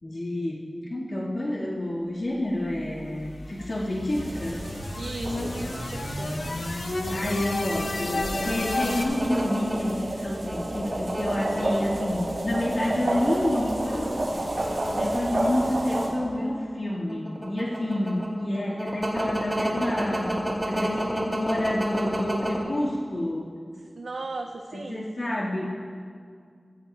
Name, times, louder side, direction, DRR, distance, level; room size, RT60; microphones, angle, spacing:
voice 1, 0.0-4.6 7.1-14.1 14.9-23.5 24.7-25.7, left 1 dB, 55° left, -5 dB, 1.9 m, -29 dB
sound 1, 2.6-9.0, left 2 dB, 90° left, 1.1 m, -33 dB
sound 2, 4.1-16.1, right 1 dB, 60° right, 4.0 m, -31 dB
voice 2, 5.0-6.3 15.1-15.3 24.0-25.0, right 3 dB, 90° right, 3 dB, 0.5 m, -37 dB
sound 3, 8.4-11.8 12.5-13.0 13.3-13.5 14.3-16.0 16.4-22.6, right 1 dB, 20° right, 2.5 m, -30 dB
17.5 x 15.5 x 2.4 m, 2.1 s
wide cardioid pair, 85°, 0 cm